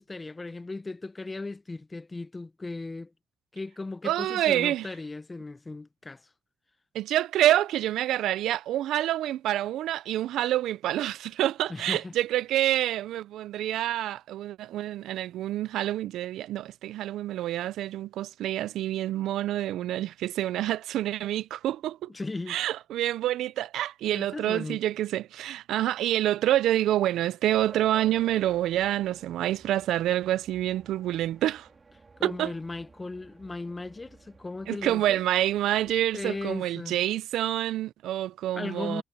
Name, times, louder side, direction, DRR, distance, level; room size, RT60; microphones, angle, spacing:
voice 1, 0.0-3.1 3.5-6.2 11.7-12.1 22.1-22.6 24.1-24.8 32.2-35.2 36.1-37.0 38.5-39.0, left 3 dB, 20° left, 0.7 m, -37 dB
voice 2, 4.0-4.8 6.9-22.1 22.5-31.7 32.2-32.5 34.7-39.0, right 13 dB, 80° right, 0.4 m, -27 dB
sound 1, 27.5-36.6, right 4 dB, 30° right, 3.2 m, -53 dB
cardioid pair, 90°, 0 cm